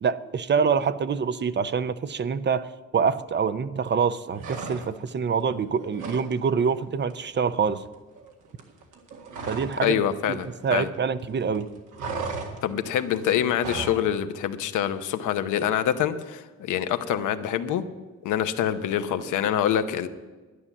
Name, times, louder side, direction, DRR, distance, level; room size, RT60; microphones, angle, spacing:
voice 1, 0.0-7.8 9.5-10.0 10.3-11.7, right 6 dB, 35° right, 14 dB, 0.6 m, -26 dB
sound 1, 4.3-5.2 5.5-6.3 6.6-6.8 7.1-9.9 10.1-11.2 11.5-14.0, right 4 dB, 85° right, 2.0 m, -36 dB
voice 2, 9.8-10.9 12.6-17.8 18.2-20.1, left 10 dB, 85° left, 9 dB, 0.9 m, -25 dB
11.5 x 9.8 x 7.2 m, 1.3 s
cardioid pair, 90°, 30 cm